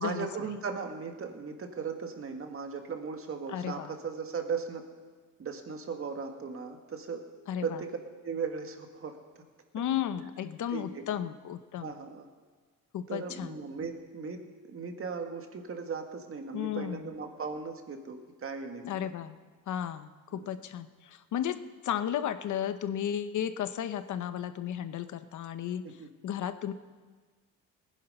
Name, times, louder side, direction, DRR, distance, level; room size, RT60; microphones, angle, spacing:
voice 1, 0.0-4.8 5.4-7.2 7.6-8.0 8.2-9.4 10.7-11.0 11.8-12.3 13.1-18.9 20.3-20.5 25.8-26.1, right 5 dB, 40° right, 5 dB, 1.8 m, -37 dB
voice 2, 3.5-3.9 7.5-7.8 9.7-11.9 12.9-13.6 16.5-17.1 18.8-19.4 19.7-25.8 26.2-26.7, left 10 dB, 60° left, 11 dB, 0.9 m, -34 dB
19.5 x 10.0 x 5.5 m, 1.5 s
cardioid pair, 110°, 33 cm